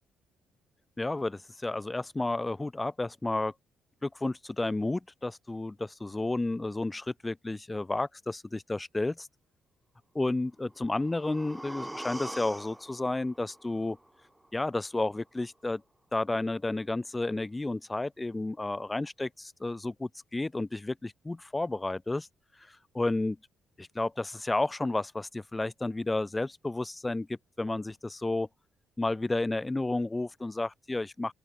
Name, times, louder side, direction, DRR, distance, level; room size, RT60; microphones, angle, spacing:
voice 1, 1.0-3.5 4.0-9.3 10.1-14.0 14.5-15.8 16.1-22.3 22.6-23.4 23.8-28.5 29.0-31.3, left 2 dB, 15° left, 1.3 m, -32 dB
sound 1, 10.6-14.6 15.0-15.1, right 1 dB, 5° right, 4.9 m, -44 dB
open air
cardioid pair, 90°, 0 cm